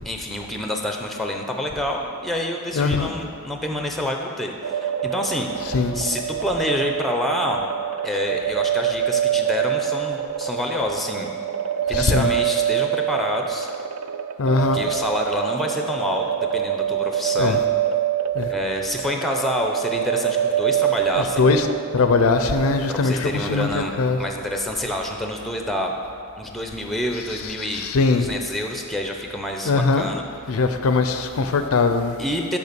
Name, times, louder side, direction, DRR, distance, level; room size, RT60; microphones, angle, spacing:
voice 1, 0.0-7.6 8.0-11.3 11.9-13.7 14.5-16.3 16.5-17.6 18.5-21.5 22.9-25.9 26.4-27.8 28.1-30.6 32.2-32.6, left 1 dB, ahead, 2 dB, 0.6 m, -27 dB
voice 2, 2.7-3.1 5.7-6.0 11.9-12.3 14.4-14.8 17.4-17.6 18.3-18.5 21.4-21.7 21.9-24.2 27.8-28.3 29.7-30.1 30.5-32.1, left 4 dB, 65° left, 8 dB, 0.5 m, -20 dB
sound 1, 4.6-23.1, right 10 dB, 75° right, 0.4 m, -25 dB
6.8 x 5.3 x 6.7 m, 2.4 s
head